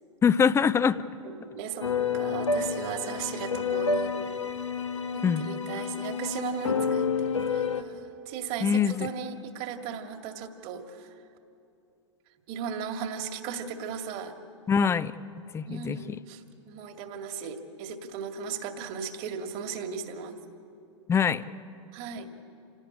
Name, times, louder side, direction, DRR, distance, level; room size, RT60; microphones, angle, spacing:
voice 1, 0.2-1.0 5.2-5.5 8.6-9.1 14.7-15.1 15.5-16.0 21.1-21.4, left 6 dB, 15° left, 16 dB, 0.7 m, -23 dB
voice 2, 1.2-4.1 5.1-11.1 12.5-14.3 15.7-20.3 21.9-22.3, right 7 dB, 45° right, 6 dB, 2.2 m, -37 dB
sound 1, 1.8-7.8, left 5 dB, 85° left, 1.5 m, -29 dB
28.0 x 18.5 x 8.9 m, 2.7 s
figure-of-eight pair, 95°, 15 cm